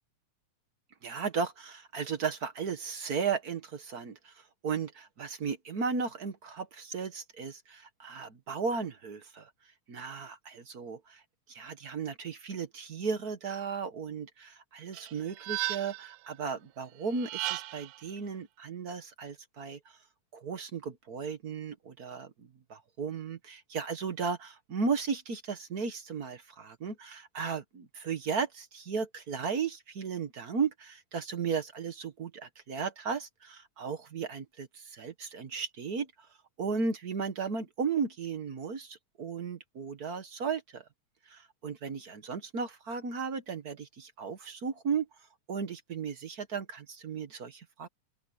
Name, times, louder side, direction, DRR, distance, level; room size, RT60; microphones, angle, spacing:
voice 1, 1.0-9.5 9.9-11.2 11.5-19.8 20.3-22.3 22.7-36.1 36.6-40.8 41.3-45.0 45.5-47.9, right 5 dB, 50° right, 1.1 m, -35 dB
sound 1, 14.9-16.2 17.1-18.0, right 18 dB, 85° right, 2.3 m, -35 dB
open air
omnidirectional pair, 3.6 m